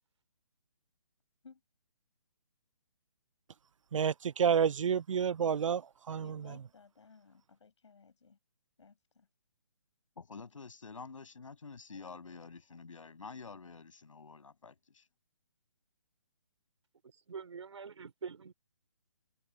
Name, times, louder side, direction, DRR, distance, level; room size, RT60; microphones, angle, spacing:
voice 1, 3.9-6.6, right 7 dB, 75° right, 0.5 m, -30 dB
voice 2, 6.2-8.4 8.8-9.3, left 5 dB, 65° left, 6.2 m, -58 dB
voice 3, 10.2-15.1, left 4 dB, 80° left, 7.2 m, -48 dB
voice 4, 17.0-18.5, right 6 dB, 60° right, 3.6 m, -45 dB
hypercardioid pair, 175°, 17 cm